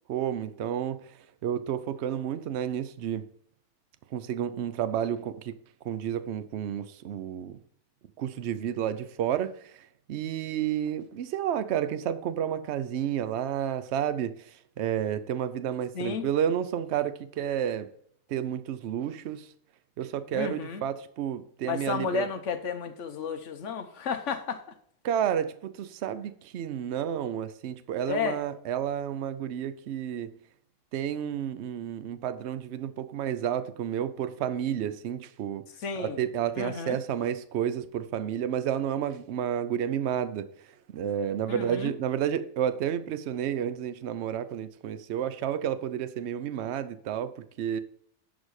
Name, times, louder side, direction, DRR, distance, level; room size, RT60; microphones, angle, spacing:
voice 1, 0.1-1.1 1.4-3.3 4.1-5.6 5.8-7.6 8.2-17.9 18.3-19.5 20.0-22.3 25.0-30.4 30.9-35.6 36.0-40.5 40.9-47.8, right 9 dB, 65° right, 0.7 m, -31 dB
voice 2, 15.9-16.3 20.3-20.8 21.7-24.6 28.1-28.4 35.8-36.2 36.6-37.0 41.5-41.9, left 6 dB, 55° left, 1.0 m, -32 dB
11.0 x 4.2 x 4.8 m
omnidirectional pair, 1.7 m